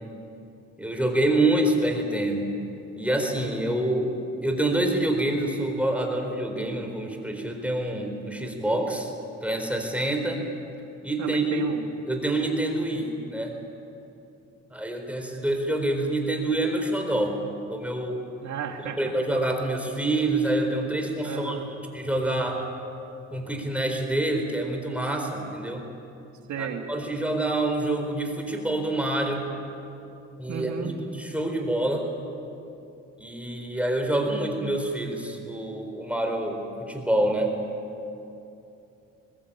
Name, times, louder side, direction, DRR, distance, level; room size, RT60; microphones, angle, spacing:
voice 1, 0.8-2.5 3.0-4.1 4.4-9.1 9.4-10.4 11.0-11.6 12.1-13.5 14.7-17.4 17.7-18.2 19.0-21.6 21.9-22.7 23.3-25.8 26.6-29.5 30.4-32.1 33.2-37.5, right 1 dB, 5° right, 3 dB, 4.2 m, -26 dB
voice 2, 11.2-11.9 18.4-19.1 21.2-21.7 26.5-26.9 30.5-31.0, right 7 dB, 70° right, 3 dB, 2.3 m, -33 dB
21.5 x 20.0 x 8.7 m, 2.7 s
cardioid pair, 90°, 30 cm